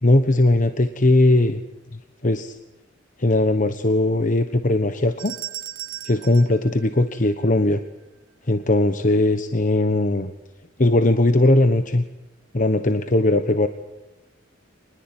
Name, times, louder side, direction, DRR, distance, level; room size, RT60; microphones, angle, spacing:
voice 1, 0.0-1.6 2.2-2.5 3.2-5.3 6.0-7.8 8.5-10.3 10.8-12.0 12.5-13.7, left 2 dB, 40° left, 9 dB, 1.2 m, -19 dB
sound 1, 5.2-7.6, right 12 dB, 85° right, 1.9 m, -37 dB
26.0 x 20.5 x 9.1 m, 1.1 s
head